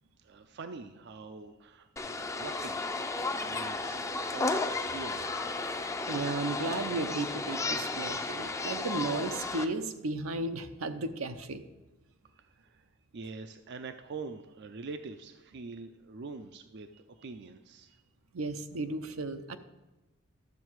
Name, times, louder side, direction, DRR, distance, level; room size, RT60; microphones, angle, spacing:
voice 1, 0.2-2.9 3.2-5.4 12.3-12.9 13.1-18.0, right 4 dB, 55° right, 8 dB, 0.5 m, -45 dB
sound 1, 2.0-9.7, left 3 dB, 15° left, 0.5 m, -33 dB
voice 2, 6.1-11.6 18.3-19.6, right 2 dB, 85° right, 8 dB, 0.7 m, -34 dB
12.0 x 7.3 x 4.6 m, 1.1 s
head